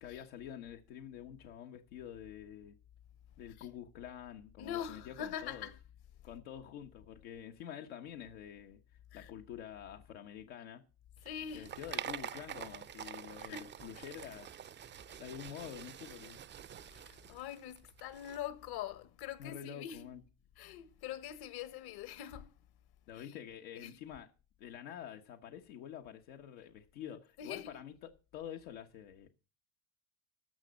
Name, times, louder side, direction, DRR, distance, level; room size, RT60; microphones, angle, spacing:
voice 1, 0.0-2.8 3.4-5.7 6.2-8.8 9.1-10.8 11.5-14.5 15.2-16.4 19.4-20.2 23.1-24.3 24.6-28.0 28.3-29.3, left 9 dB, 85° left, 1.3 m, -47 dB
voice 2, 4.6-5.8 9.1-9.3 11.2-11.7 13.4-13.7 16.8-20.1 20.6-22.5 23.1-23.4 23.7-24.0 27.4-27.8, left 10 dB, 65° left, 1.5 m, -44 dB
sound 1, 11.2-18.4, right 9 dB, 30° right, 0.5 m, -46 dB
14.0 x 5.3 x 7.4 m
supercardioid pair, 90°, 40 cm